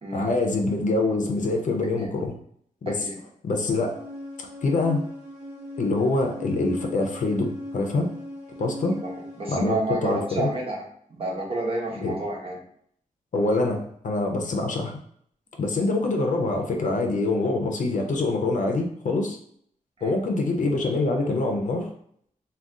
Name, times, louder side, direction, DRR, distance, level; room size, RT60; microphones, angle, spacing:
voice 1, 0.1-2.3 2.8-3.1 3.4-3.9 4.6-5.0 5.8-8.1 8.6-9.0 9.5-10.5 12.0-12.2 13.3-15.0 15.6-19.4 20.0-21.9, left 2 dB, 60° left, 2 dB, 0.5 m, -25 dB
sound 1, 3.7-9.6, left 1 dB, 5° right, 1.0 m, -38 dB
voice 2, 9.0-10.8 11.1-12.6 20.0-20.1, right 2 dB, 40° right, -2 dB, 0.8 m, -30 dB
2.4 x 2.3 x 3.6 m, 0.65 s
wide cardioid pair, 135°, 14 cm